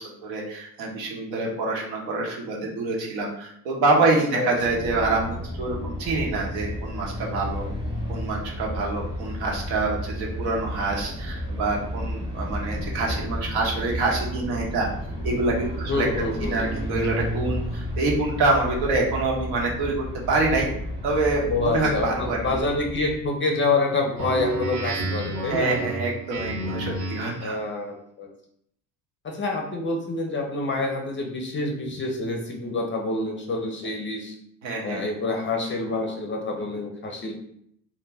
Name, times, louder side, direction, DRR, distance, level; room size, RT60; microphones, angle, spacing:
voice 1, 0.0-7.7 8.1-14.9 15.2-16.1 16.4-20.7 21.0-22.6 25.5-27.6 34.6-35.0, right 3 dB, 75° right, -1 dB, 0.9 m, -26 dB
voice 2, 4.0-4.5 15.9-16.6 21.5-25.8 27.4-28.3 29.2-34.3 34.8-37.3, left 3 dB, 25° left, 1 dB, 0.5 m, -27 dB
sound 1, 4.5-23.3, equal, 10° right, 0.9 m, -32 dB
Speech synthesizer, 24.2-27.5, right 2 dB, 40° right, 0.7 m, -30 dB
2.2 x 2.1 x 3.3 m, 0.70 s
supercardioid pair, 75°, 46 cm